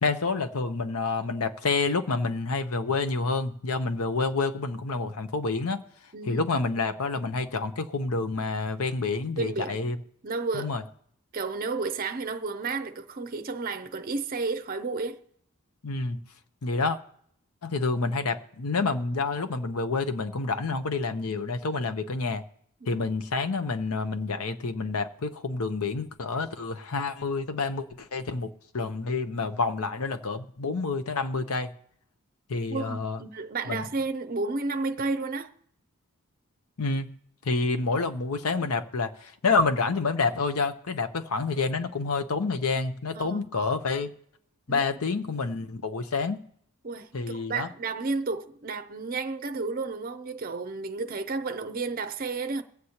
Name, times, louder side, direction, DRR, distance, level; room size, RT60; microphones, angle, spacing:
voice 1, 0.0-5.8 6.3-10.0 10.5-10.8 15.8-16.2 16.6-17.0 17.6-22.4 22.9-31.7 32.5-33.2 33.7-33.9 36.8-37.1 37.4-44.1 44.7-46.4 47.1-47.7, left 4 dB, 80° left, 0.8 m, -28 dB
voice 2, 6.1-6.4 9.4-9.9 10.2-10.8 11.3-15.2 22.8-23.0 32.7-35.5 43.1-43.4 44.7-44.8 46.8-52.6, right 3 dB, 40° right, 0.5 m, -32 dB
22.5 x 8.0 x 2.9 m
head